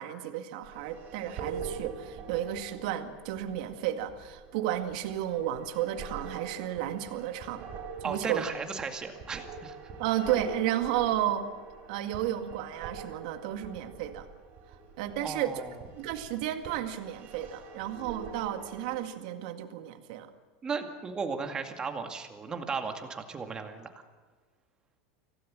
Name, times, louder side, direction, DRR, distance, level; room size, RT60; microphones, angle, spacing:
voice 1, 0.0-7.7 8.0-8.5 10.0-11.5 11.9-14.3 15.0-15.5 16.0-20.3, right 12 dB, 65° right, 7 dB, 2.1 m, -32 dB
sound 1, 0.6-19.0, right 5 dB, 35° right, 4.6 m, -44 dB
voice 2, 8.0-9.8 15.2-15.7 20.6-24.0, right 5 dB, 15° right, 5 dB, 2.2 m, -35 dB
26.0 x 17.5 x 7.6 m, 1.5 s
supercardioid pair, 160°, 5 cm